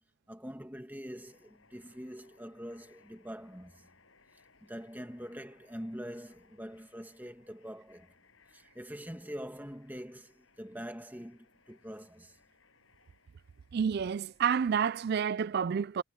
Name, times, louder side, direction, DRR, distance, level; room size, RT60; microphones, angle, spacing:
voice 1, 0.3-3.9 4.6-8.1 8.5-12.4, equal, 10° right, 2.1 m, -44 dB
sound 1, 0.9-14.5, left 4 dB, 65° left, 7.0 m, -66 dB
voice 2, 13.7-16.0, right 7 dB, 45° right, 0.3 m, -29 dB
head